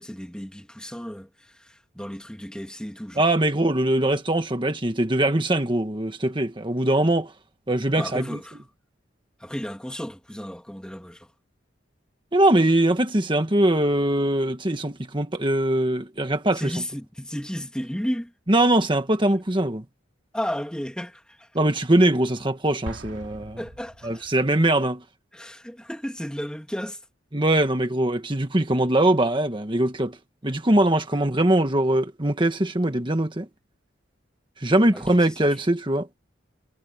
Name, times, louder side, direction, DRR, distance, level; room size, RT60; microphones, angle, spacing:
voice 1, 0.0-3.2 8.0-8.6 9.4-11.3 16.5-18.3 20.3-21.5 23.6-24.4 25.3-27.0 34.9-35.6, equal, 5° left, 1.9 m, -34 dB
voice 2, 3.2-7.3 7.7-8.4 12.3-16.7 18.5-19.8 21.5-23.6 24.0-25.0 27.3-30.2 30.4-33.4 34.6-36.1, right 1 dB, 25° right, 1.6 m, -22 dB
Explosion, 22.8-24.6, right 1 dB, 85° right, 2.5 m, -40 dB
head